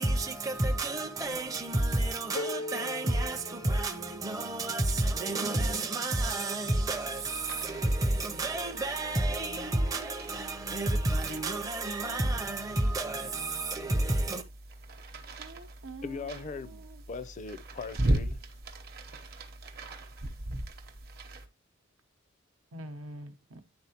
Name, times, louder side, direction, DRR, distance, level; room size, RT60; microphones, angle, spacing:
voice 1, 0.0-14.4, right 2 dB, 15° right, 0.5 m, -30 dB
sound 1, 2.4-4.4, left 2 dB, 90° left, 0.8 m, -39 dB
sound 2, 6.7-21.5, right 1 dB, 50° right, 0.8 m, -38 dB
voice 2, 15.4-16.2 16.6-17.0 22.7-23.6, right 1 dB, 85° right, 0.9 m, -45 dB
voice 3, 16.0-18.4, left 4 dB, 35° left, 0.4 m, -40 dB
9.7 x 3.7 x 2.8 m
head